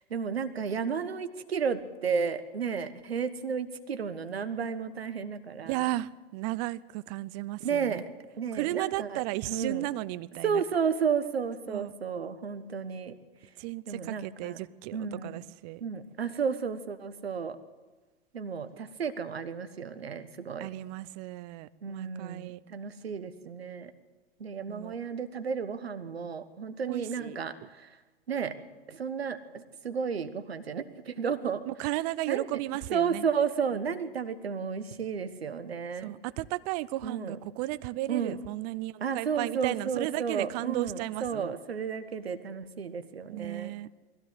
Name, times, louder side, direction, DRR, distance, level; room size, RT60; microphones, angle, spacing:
voice 1, 0.1-5.9 7.6-8.1 8.4-9.2 9.5-9.9 10.4-13.2 13.9-14.6 14.9-15.4 15.8-17.6 18.3-20.7 21.8-23.9 24.4-28.0 28.3-28.6 28.9-31.9 32.3-32.4 32.9-36.2 37.0-37.4 38.1-38.4 39.0-43.8, right 6 dB, 75° right, 11 dB, 1.5 m, -32 dB
voice 2, 5.7-8.0 8.5-10.6 11.7-11.9 13.6-15.8 20.6-22.6 24.7-24.9 26.9-27.4 31.7-33.2 36.0-41.5 43.3-43.9, right 17 dB, 40° right, 18 dB, 0.6 m, -34 dB
21.5 x 16.5 x 8.1 m, 1.2 s
figure-of-eight pair, 95°, 31 cm